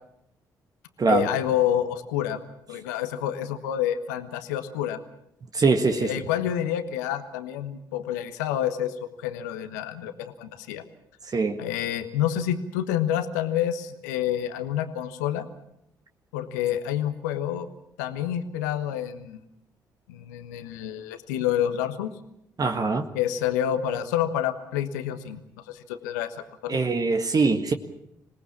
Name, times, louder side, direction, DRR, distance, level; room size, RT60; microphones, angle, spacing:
voice 1, 1.1-2.4 2.7-5.0 5.9-10.8 11.6-15.5 16.3-17.7 18.0-19.4 20.1-22.1 23.1-25.4 25.7-26.3 26.6-26.8, left 10 dB, 80° left, 9 dB, 1.2 m, -28 dB
voice 2, 5.5-6.1 11.3-11.6 22.6-23.1 26.7-27.7, right 4 dB, 40° right, 6 dB, 1.7 m, -22 dB
26.5 x 18.5 x 7.2 m, 0.79 s
hypercardioid pair, 40°, 9 cm